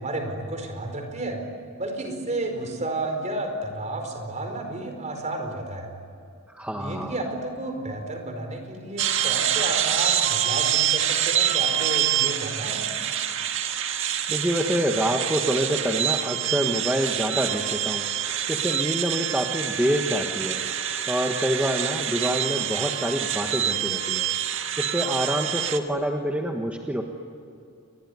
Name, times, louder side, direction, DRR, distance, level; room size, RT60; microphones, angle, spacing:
voice 1, 0.0-1.4 1.8-5.9 6.7-12.8, right 2 dB, 35° right, 4 dB, 4.8 m, -31 dB
voice 2, 6.5-7.2 14.3-20.6 21.1-24.3 24.8-27.0, equal, 5° right, 2 dB, 1.4 m, -27 dB
sound 1, 9.0-25.8, right 10 dB, 65° right, 1.7 m, -26 dB
29.0 x 22.0 x 9.5 m, 2.5 s
head